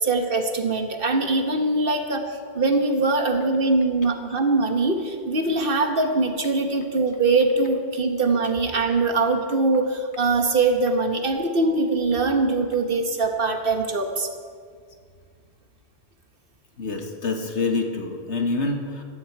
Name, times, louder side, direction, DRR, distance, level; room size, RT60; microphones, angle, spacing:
voice 1, 0.0-2.3 2.5-14.3, right 3 dB, 55° right, 5 dB, 1.4 m, -22 dB
voice 2, 16.8-19.0, left 3 dB, 80° left, 3 dB, 2.0 m, -26 dB
15.5 x 15.0 x 4.6 m, 2.1 s
omnidirectional pair, 1.2 m